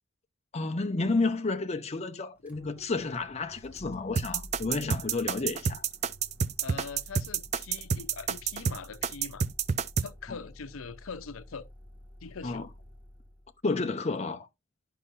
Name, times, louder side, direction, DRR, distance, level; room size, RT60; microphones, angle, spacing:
voice 1, 0.5-5.8 12.4-12.7 13.6-14.5, left 3 dB, 30° left, 0.6 m, -31 dB
Motor vehicle (road), 2.4-13.5, equal, 5° right, 1.6 m, -51 dB
sound 1, 4.2-10.1, right 6 dB, 35° right, 0.4 m, -29 dB
voice 2, 6.6-9.4 10.0-11.7 12.2-12.7, left 5 dB, 90° left, 0.6 m, -42 dB
10.0 x 5.6 x 2.5 m
head